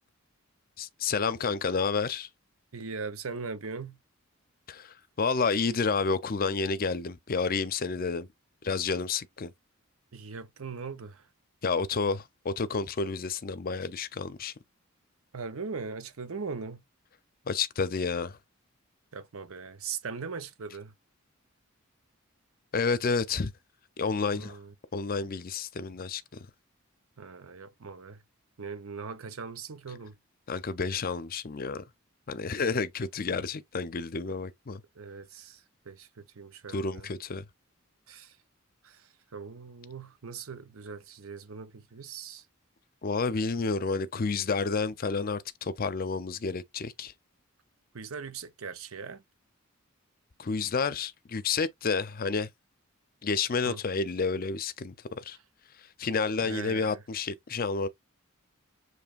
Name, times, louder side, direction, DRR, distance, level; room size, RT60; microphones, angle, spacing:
voice 1, 0.8-2.3 4.7-8.3 8.6-9.5 11.6-14.5 17.5-18.4 22.7-23.5 24.0-24.6 24.9-26.2 30.5-31.8 32.3-34.8 36.7-37.4 43.0-47.1 50.4-52.5 53.2-55.4 56.0-57.9, left 4 dB, 45° left, 0.5 m, -30 dB
voice 2, 2.7-4.0 10.1-11.2 15.3-16.8 19.1-20.9 24.3-24.7 27.2-28.2 28.6-30.1 35.0-35.6 35.9-37.1 38.1-38.3 38.8-39.0 39.3-42.4 47.9-49.2 53.7-53.8 56.4-57.0, right 5 dB, 75° right, 0.8 m, -40 dB
6.9 x 3.2 x 2.4 m
head